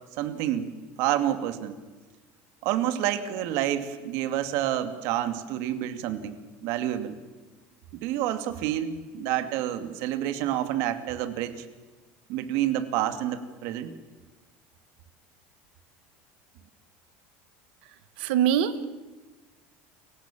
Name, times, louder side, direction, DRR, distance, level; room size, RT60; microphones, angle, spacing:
voice 1, 0.2-0.7 1.0-1.8 2.6-7.2 7.9-11.7 12.3-13.9, right 12 dB, 60° right, 9 dB, 2.4 m, -28 dB
voice 2, 18.2-18.9, right 9 dB, 85° right, 13 dB, 1.8 m, -23 dB
30.0 x 24.5 x 7.4 m, 1.3 s
cardioid pair, 155°, 5 cm